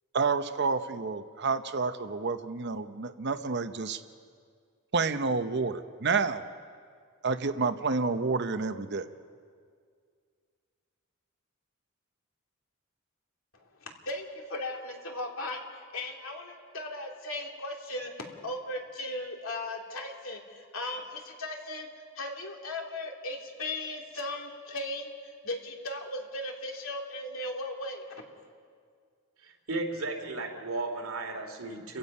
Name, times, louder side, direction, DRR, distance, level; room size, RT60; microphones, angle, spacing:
voice 1, 0.1-4.0 4.9-6.4 7.2-9.1, right 4 dB, 50° right, 10 dB, 0.8 m, -29 dB
voice 2, 13.8-21.9 22.2-28.1, left 1 dB, 70° left, 2 dB, 2.7 m, -37 dB
voice 3, 29.4-32.0, right 2 dB, 75° right, 3 dB, 2.6 m, -35 dB
30.0 x 16.0 x 5.5 m, 2.1 s
head